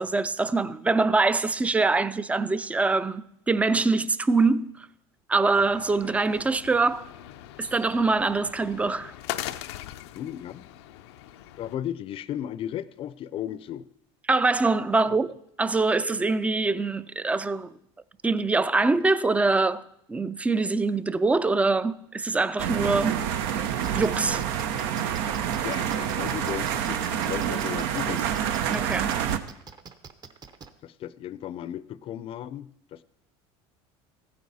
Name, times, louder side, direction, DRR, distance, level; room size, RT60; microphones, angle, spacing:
voice 1, 0.0-4.9 5.3-7.1 7.6-9.1 14.3-17.7 18.2-19.8 20.1-23.2 23.9-24.4 28.7-29.2, right 3 dB, 10° right, 0.4 m, -24 dB
sound 1, 5.6-11.8, left 13 dB, 85° left, 0.6 m, -40 dB
voice 2, 10.1-10.7 11.6-13.9 15.1-15.2 24.7-24.9 25.6-28.3 30.8-33.0, left 11 dB, 45° left, 0.5 m, -35 dB
sound 2, 22.6-29.4, right 9 dB, 75° right, 0.8 m, -27 dB
sound 3, 23.8-30.7, right 5 dB, 30° right, 0.8 m, -45 dB
14.5 x 9.5 x 4.2 m
supercardioid pair, 110°, 13 cm